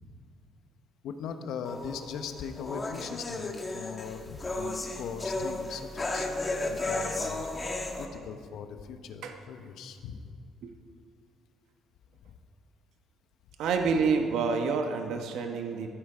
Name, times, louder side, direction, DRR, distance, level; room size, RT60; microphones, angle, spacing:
voice 1, 1.0-7.4 8.0-10.2, left 6 dB, 70° left, 7 dB, 1.1 m, -40 dB
sound 1, 1.6-8.1, left 2 dB, 20° left, 1.3 m, -34 dB
voice 2, 13.6-15.9, right 5 dB, 75° right, 4 dB, 1.1 m, -28 dB
14.0 x 13.5 x 5.0 m, 2.2 s
cardioid pair, 145°, 0 cm